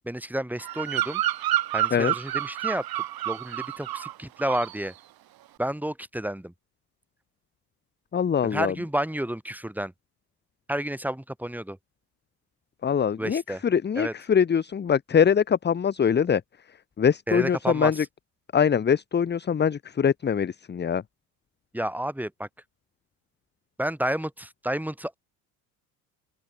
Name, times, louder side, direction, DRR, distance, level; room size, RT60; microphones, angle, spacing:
voice 1, 0.0-1.2 1.7-4.9 5.6-6.5 8.4-9.9 10.7-11.8 13.2-13.6 14.0-14.1 17.3-18.1 21.7-22.5 23.8-25.2, right 1 dB, 5° right, 7.7 m, -30 dB
Bird vocalization bird call bird song, 0.6-4.1 4.4-4.8, right 14 dB, 50° right, 2.6 m, -29 dB
voice 2, 8.1-8.7 12.8-16.4 17.0-18.0 18.5-21.0, left 7 dB, 20° left, 1.0 m, -23 dB
open air
hypercardioid pair, 80°, 47 cm